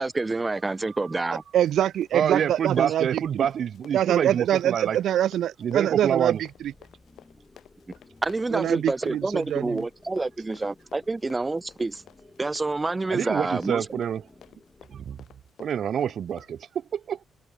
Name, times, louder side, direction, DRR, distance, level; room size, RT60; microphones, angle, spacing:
voice 1, 0.0-1.4 8.2-12.0 12.4-13.9, right 3 dB, 15° right, 0.5 m, -28 dB
Run, 1.3-16.6, left 10 dB, 70° left, 6.3 m, -53 dB
voice 2, 1.5-3.5 3.9-6.4 8.5-9.8, right 11 dB, 75° right, 1.1 m, -24 dB
voice 3, 2.1-5.0 5.6-6.4 13.1-14.2 14.9-15.2 15.6-17.2, right 8 dB, 55° right, 1.4 m, -27 dB
sound 1, 6.2-15.0, left 3 dB, 15° left, 6.1 m, -56 dB
cardioid pair, 130°, 0 cm